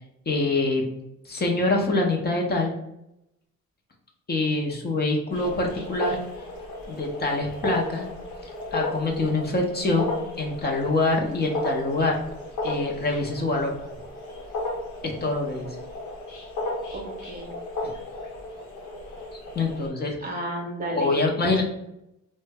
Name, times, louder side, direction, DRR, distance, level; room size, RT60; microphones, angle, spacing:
voice 1, 0.3-0.8 1.2-2.7 4.3-6.2 6.9-8.1 8.7-10.1 10.4-12.2 12.6-13.7 15.0-15.8 17.8-17.9 19.3-20.2 20.9-21.6, left 2 dB, 35° left, 0 dB, 0.6 m, -25 dB
sound 1, 5.3-19.9, left 2 dB, 90° left, 0.9 m, -34 dB
voice 2, 16.9-17.5 20.2-21.6, right 1 dB, 30° right, 1 dB, 0.8 m, -32 dB
3.1 x 2.1 x 3.3 m, 0.85 s
cardioid pair, 90°, 30 cm